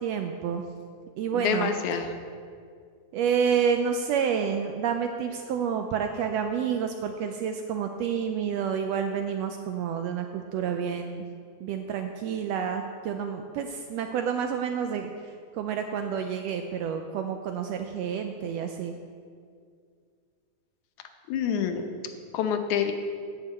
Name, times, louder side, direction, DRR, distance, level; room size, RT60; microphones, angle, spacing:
voice 1, 0.0-0.6 1.2-1.7 3.1-11.2 11.6-18.9, right 7 dB, 80° right, 5 dB, 1.5 m, -29 dB
voice 2, 1.3-2.1 21.3-21.9 22.3-22.9, left 7 dB, 85° left, 6 dB, 2.3 m, -27 dB
8.5 x 6.7 x 8.1 m, 2.2 s
omnidirectional pair, 3.4 m